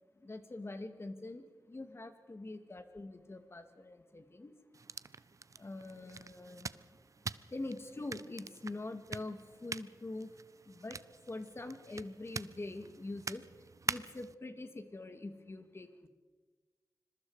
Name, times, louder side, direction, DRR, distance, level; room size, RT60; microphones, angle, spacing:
voice 1, 0.2-4.5 5.6-6.7 7.5-10.3 10.7-11.0 11.3-13.4 13.9-16.1, left 2 dB, 40° left, 8 dB, 2.2 m, -44 dB
sound 1, 4.7-14.3, right 4 dB, 50° right, 0.7 m, -45 dB
26.0 x 22.0 x 5.0 m, 1.3 s
wide cardioid pair, 80°, 7 cm